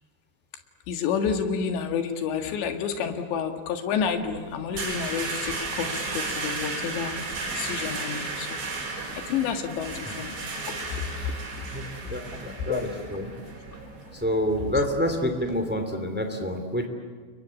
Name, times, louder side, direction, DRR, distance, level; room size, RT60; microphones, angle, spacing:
voice 1, 0.9-7.2 7.5-8.6 9.1-10.3 10.7-11.1 12.3-12.4 12.6-12.8, left 7 dB, 70° left, 7 dB, 3.9 m, -29 dB
sound 1, 4.0-15.6, right 3 dB, 65° right, 7.3 m, -35 dB
voice 2, 11.7-13.3 14.1-16.9, equal, 10° right, 6 dB, 0.7 m, -28 dB
30.0 x 23.0 x 8.5 m, 1.5 s
omnidirectional pair, 5.5 m